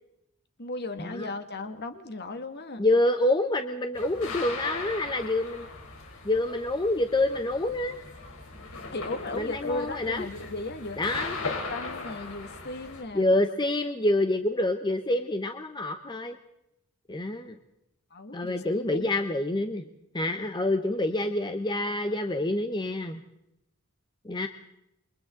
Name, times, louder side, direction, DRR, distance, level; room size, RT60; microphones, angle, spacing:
voice 1, 0.6-2.8 8.9-11.0 11.7-13.4 18.1-19.1, left 2 dB, 50° left, 7 dB, 2.0 m, -36 dB
voice 2, 2.8-5.7 6.2-8.0 9.3-10.3 11.0-11.4 13.1-16.4 17.1-17.6 18.3-19.9 20.1-23.2 24.2-24.5, left 1 dB, 20° left, 7 dB, 1.0 m, -27 dB
sound 1, 3.9-13.0, left 3 dB, 65° left, 4.0 m, -39 dB
28.5 x 23.5 x 3.9 m, 0.84 s
head